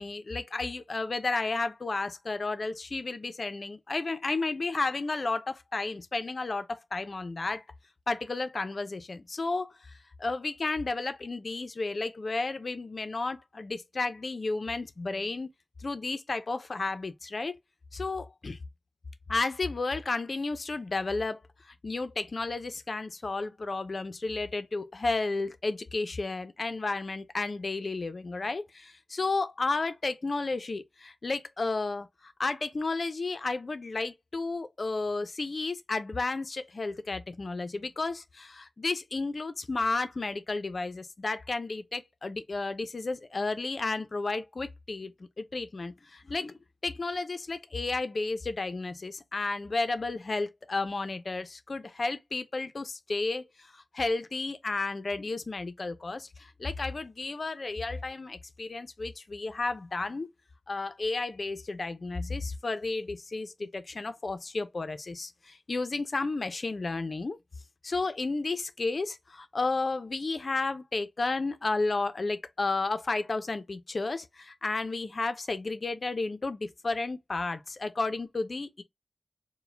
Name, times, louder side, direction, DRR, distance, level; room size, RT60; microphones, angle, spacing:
voice 1, 0.0-7.6 8.1-9.9 10.2-15.5 15.8-17.5 17.9-18.6 19.3-60.3 60.7-67.4 67.8-78.8, left 3 dB, 55° left, 0.6 m, -32 dB
4.7 x 2.2 x 3.3 m
wide cardioid pair, 80°, 0 cm